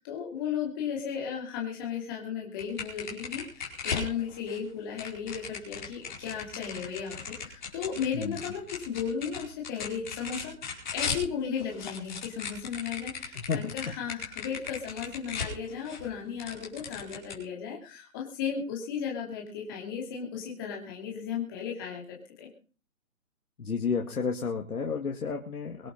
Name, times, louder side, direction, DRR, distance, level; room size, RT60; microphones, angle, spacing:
voice 1, 0.0-22.5, left 7 dB, 15° left, -2 dB, 2.7 m, -35 dB
flipping cards, 2.6-4.6 5.0-11.3 11.5-16.1 16.4-17.3, left 6 dB, 30° left, 4.7 m, -37 dB
voice 2, 13.3-13.7 23.6-25.9, left 5 dB, 85° left, 1 dB, 2.5 m, -31 dB
24.0 x 8.5 x 5.3 m, 0.38 s
hypercardioid pair, 175°, 43 cm